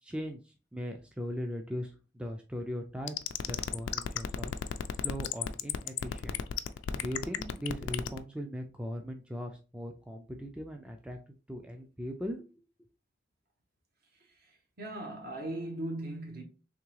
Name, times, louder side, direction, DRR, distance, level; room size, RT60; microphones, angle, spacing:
voice 1, 0.0-3.2 3.4-6.4 7.0-12.5, equal, 5° right, 0.4 m, -39 dB
sound 1, 3.1-8.2, left 9 dB, 65° left, 0.3 m, -32 dB
voice 2, 14.8-16.4, right 1 dB, 55° right, 1.1 m, -38 dB
3.6 x 3.0 x 3.1 m
head